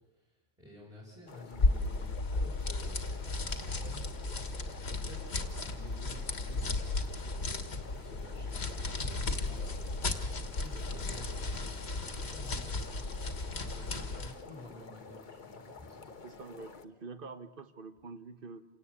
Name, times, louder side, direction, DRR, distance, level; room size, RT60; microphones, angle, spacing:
voice 1, 0.1-4.0 4.9-12.9 13.4-16.1, left 1 dB, 5° right, -5 dB, 6.3 m, -52 dB
sound 1, 1.3-16.8, left 4 dB, 45° left, 1.2 m, -51 dB
sound 2, 1.5-14.4, left 3 dB, 75° left, 1.9 m, -34 dB
voice 2, 16.2-18.7, right 4 dB, 55° right, 10 dB, 1.5 m, -46 dB
28.0 x 18.0 x 8.5 m, 1.1 s
omnidirectional pair, 1.1 m